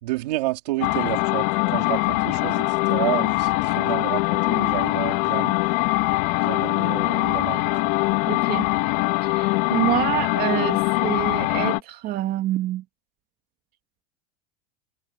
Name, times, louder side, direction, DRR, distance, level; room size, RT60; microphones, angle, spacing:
voice 1, 0.0-2.6 2.9-5.6 6.4-8.0, right 19 dB, 85° right, 4.0 m, -30 dB
sound 1, 0.8-11.8, left 24 dB, 70° left, 3.7 m, -22 dB
voice 2, 8.3-8.7 9.2-12.8, right 14 dB, 50° right, 2.3 m, -27 dB
supercardioid pair, 120°, 20 cm